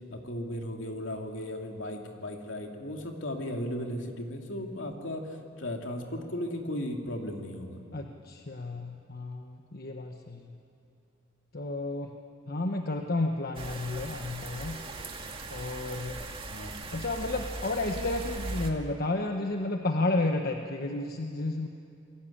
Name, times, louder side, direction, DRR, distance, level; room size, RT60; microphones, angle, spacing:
voice 1, 0.1-5.3 5.6-7.8 16.5-16.8, left 1 dB, 70° left, 2 dB, 2.9 m, -36 dB
voice 2, 7.9-10.6 11.5-12.1 12.5-14.8 15.5-16.2 16.9-21.7, left 2 dB, 50° left, 4 dB, 1.2 m, -32 dB
sound 1, 13.5-18.7, right 2 dB, 30° right, 2.2 m, -39 dB
28.5 x 21.5 x 8.8 m, 2.6 s
head